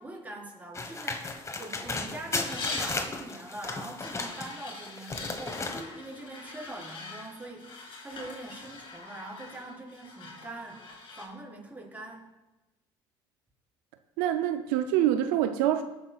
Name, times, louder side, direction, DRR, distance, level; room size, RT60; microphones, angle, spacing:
voice 1, 0.0-10.8 11.1-12.3, right 2 dB, 15° right, -3 dB, 4.3 m, -43 dB
sound 1, 0.7-4.5 4.9-5.8, left 3 dB, 30° left, 1.3 m, -35 dB
sound 2, 2.3-3.0 4.0-11.3, left 3 dB, 50° left, 2.7 m, -42 dB
voice 2, 14.2-15.8, right 11 dB, 90° right, 8 dB, 0.5 m, -25 dB
18.5 x 9.6 x 2.4 m, 0.97 s
supercardioid pair, 75°, 11 cm